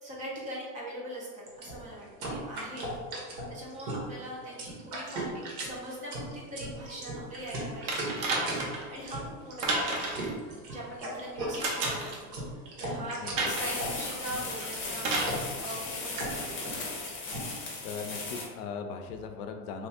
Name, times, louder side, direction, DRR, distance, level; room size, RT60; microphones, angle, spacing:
voice 1, 0.0-5.3 5.6-10.1 10.7-12.4 12.8-15.1 15.6-16.8, right 1 dB, 15° right, -4 dB, 0.3 m, -42 dB
sound 1, 1.5-17.4, right 1 dB, 70° right, 1.3 m, -37 dB
sound 2, 7.9-8.9 9.6-10.3 11.6-12.2 13.4-13.8 15.0-15.4 16.4-16.5, right 2 dB, 45° right, 0.9 m, -30 dB
voice 2, 13.0-13.3 17.8-19.9, left 5 dB, 65° left, 5 dB, 0.6 m, -39 dB
sound 3, 13.4-18.5, left 3 dB, 25° left, 0.7 m, -37 dB
3.0 x 2.7 x 3.5 m, 1.6 s
supercardioid pair, 130°, 50 cm